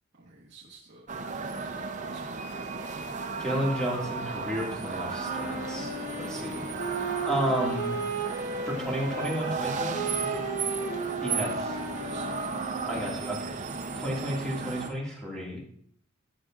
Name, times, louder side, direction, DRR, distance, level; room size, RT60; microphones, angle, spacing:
voice 1, 0.2-2.9 11.5-12.6, right 2 dB, 60° right, -7 dB, 1.3 m, -50 dB
sound 1, 1.1-14.9, right 4 dB, 35° right, 0.6 m, -34 dB
voice 2, 3.4-6.0 6.3-7.0 7.2-7.9 8.6-10.3 11.2-11.8 12.9-13.6 14.0-15.6, equal, 5° left, -4 dB, 2.0 m, -32 dB
Wind instrument woodwind instrument, 5.2-13.2, right 3 dB, 55° left, 1.7 m, -35 dB
11.5 x 6.5 x 2.4 m, 0.64 s
head